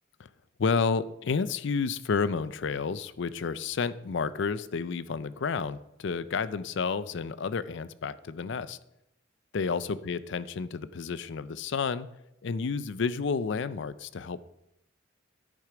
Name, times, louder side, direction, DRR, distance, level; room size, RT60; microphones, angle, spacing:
voice 1, 0.6-8.8 9.5-12.1 12.4-14.4, left 5 dB, 65° left, 16 dB, 0.5 m, -30 dB
10.0 x 6.5 x 4.9 m, 0.83 s
head